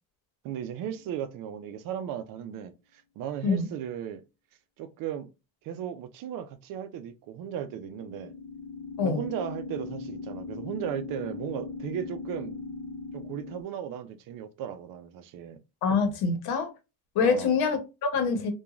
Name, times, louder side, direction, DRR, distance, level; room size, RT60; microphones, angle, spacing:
voice 1, 0.4-4.2 4.8-5.3 5.6-8.3 9.0-12.5 13.1-15.6 17.2-17.6, right 9 dB, 65° right, 0.5 m, -36 dB
sound 1, 0.8-1.4 7.5-13.6, left 4 dB, 60° left, 0.5 m, -39 dB
voice 2, 15.8-16.7 17.1-18.5, left 5 dB, 80° left, 0.9 m, -25 dB
2.9 x 2.3 x 2.4 m
cardioid pair, 145°, 36 cm